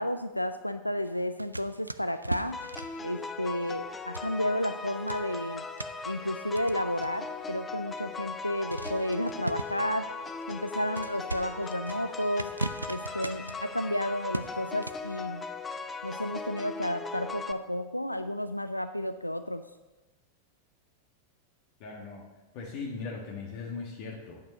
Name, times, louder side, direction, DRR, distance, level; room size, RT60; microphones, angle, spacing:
voice 1, 0.0-2.6 3.0-5.7 6.1-10.1 10.5-12.5 12.9-15.4 16.0-19.7, left 1 dB, 90° left, 10 dB, 0.3 m, -32 dB
sound 1, 1.0-4.8 5.1-7.5 8.0-8.1 8.7-15.2, right 2 dB, 85° right, 0.3 m, -40 dB
sound 2, 2.5-17.5, left 4 dB, 15° left, 0.6 m, -39 dB
voice 2, 21.8-22.2 22.5-24.4, left 4 dB, 45° left, -1 dB, 1.5 m, -39 dB
8.8 x 7.3 x 6.6 m, 1.1 s
figure-of-eight pair, 90°, 0 cm